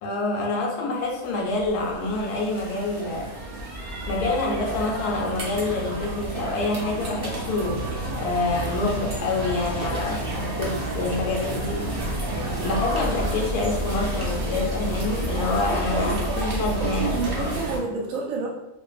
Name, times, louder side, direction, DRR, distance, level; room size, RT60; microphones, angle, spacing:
voice 1, 0.0-3.4 4.1-7.9 8.2-12.0 12.3-17.6, left 3 dB, 75° left, 0 dB, 1.0 m, -27 dB
sound 1, 1.2-17.8, right 2 dB, 80° right, 0.5 m, -31 dB
sound 2, 7.6-12.8, equal, 60° left, 0.3 m, -37 dB
sound 3, 12.0-17.6, left 2 dB, 30° left, 0.9 m, -32 dB
voice 2, 15.6-16.4 16.8-18.5, right 4 dB, 60° right, -4 dB, 0.9 m, -29 dB
2.5 x 2.3 x 2.3 m, 0.89 s
omnidirectional pair, 1.7 m